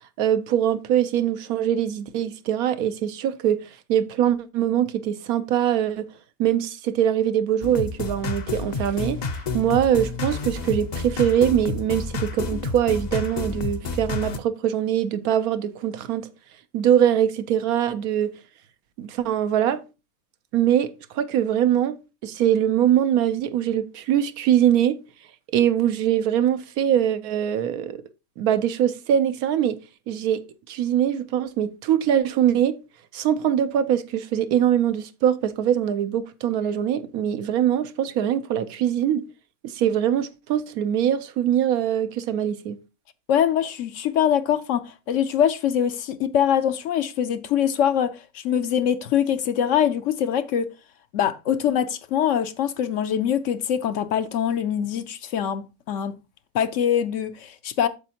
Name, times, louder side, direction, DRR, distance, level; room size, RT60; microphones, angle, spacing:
voice 1, 0.2-6.1 6.4-16.3 16.7-18.3 19.0-19.8 20.5-22.0 22.2-25.0 25.5-28.0 28.4-29.8 30.1-32.8 33.1-39.3 39.6-42.8, right 10 dB, 85° right, 1.2 m, -22 dB
sound 1, 7.6-14.4, left 3 dB, 45° left, 0.5 m, -29 dB
voice 2, 43.3-50.7 51.1-56.1 56.5-57.9, left 9 dB, 70° left, 0.9 m, -23 dB
8.4 x 7.0 x 2.8 m
omnidirectional pair, 1.5 m